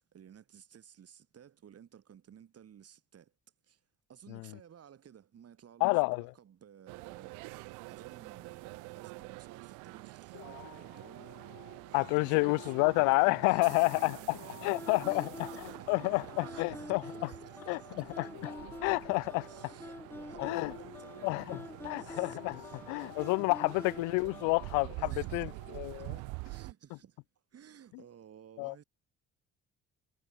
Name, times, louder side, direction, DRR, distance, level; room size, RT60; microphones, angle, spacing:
voice 1, 0.0-3.3 3.6-3.8 4.1-11.5 12.0-12.8 13.4-16.0 16.2-18.3 19.4-22.9 23.7-24.0 24.4-24.6 25.0-27.2 27.5-28.8, right 9 dB, 55° right, 5.8 m, -56 dB
voice 2, 5.8-6.3 11.9-14.4 14.6-15.5 15.9-17.3 17.7-17.8 18.2-18.3 18.8-19.4 20.4-20.7 21.2-22.6 22.9-25.5 25.7-26.1 28.6-28.7, left 32 dB, 85° left, 0.8 m, -29 dB
sound 1, 6.9-26.7, right 28 dB, 85° right, 2.5 m, -47 dB
sound 2, 10.3-26.3, left 14 dB, 70° left, 3.5 m, -54 dB
sound 3, 14.7-24.8, left 1 dB, 5° left, 1.3 m, -47 dB
supercardioid pair, 70°, 30 cm